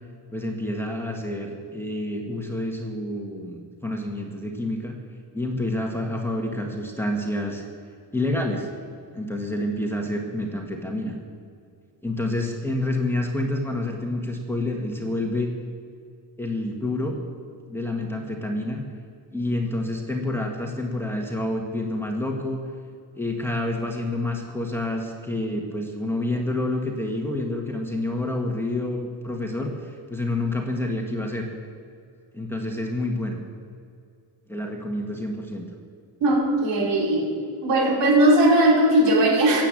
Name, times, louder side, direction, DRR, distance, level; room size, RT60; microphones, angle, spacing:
voice 1, 0.3-4.9 5.3-7.6 8.1-8.7 9.1-11.2 12.0-15.5 16.4-17.2 17.7-18.8 19.3-22.6 23.2-31.5 32.3-33.4 34.5-35.7, left 1 dB, 5° left, 1 dB, 1.5 m, -28 dB
voice 2, 36.2-37.3 37.6-39.6, right 1 dB, 75° right, -2 dB, 4.1 m, -18 dB
17.0 x 8.9 x 7.5 m, 2.4 s
cardioid pair, 155°, 43 cm